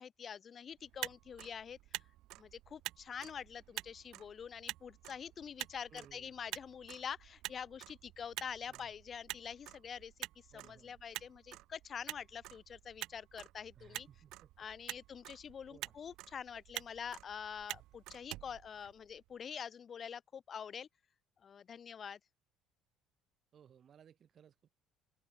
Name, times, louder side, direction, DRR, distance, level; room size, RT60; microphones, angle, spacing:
voice 1, 0.0-1.8 2.4-10.1 10.5-14.1 14.6-20.9 21.4-22.2, left 7 dB, 40° left, 0.3 m, -46 dB
Motor vehicle (road), 0.8-19.4, right 17 dB, 75° right, 0.9 m, -48 dB
voice 2, 5.9-6.4 8.7-8.9 10.5-11.0 13.7-14.7 15.7-16.0 23.5-24.8, right 8 dB, 50° right, 2.6 m, -61 dB
open air
supercardioid pair, 95°, 0 cm